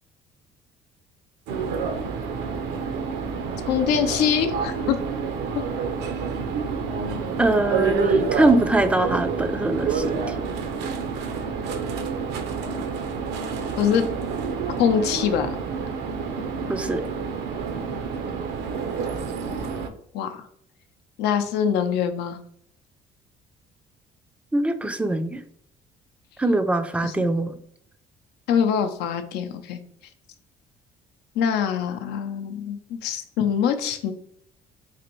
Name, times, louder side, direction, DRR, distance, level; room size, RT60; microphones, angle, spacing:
sound 1, 1.5-19.9, right 5 dB, 80° right, 0.6 m, -28 dB
voice 1, 3.7-5.0 5.5-5.6 13.8-14.1 14.8-15.6 20.1-20.5 21.2-22.4 27.0-27.3 28.5-29.8 31.3-34.1, left 8 dB, 85° left, 7 dB, 0.5 m, -24 dB
voice 2, 7.4-10.2 16.7-17.0 24.5-25.4 26.4-27.5, right 2 dB, 5° right, 9 dB, 0.3 m, -22 dB
4.1 x 2.6 x 3.0 m, 0.67 s
cardioid pair, 110°, 17 cm